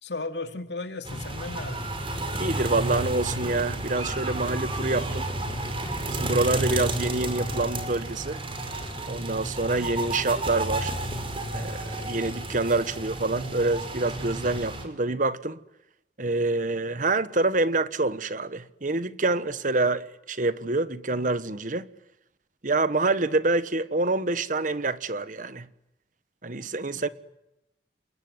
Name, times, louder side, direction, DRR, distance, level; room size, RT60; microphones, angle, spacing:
voice 1, 0.0-1.9 26.9-27.1, left 3 dB, 80° left, 2.6 m, -35 dB
sound 1, 1.0-14.8, right 1 dB, 30° right, 5.5 m, -31 dB
voice 2, 2.4-5.3 6.1-8.4 9.1-10.9 11.5-15.6 16.2-21.9 22.6-25.7 26.4-27.1, right 2 dB, 50° right, 1.2 m, -26 dB
28.5 x 21.5 x 9.8 m
head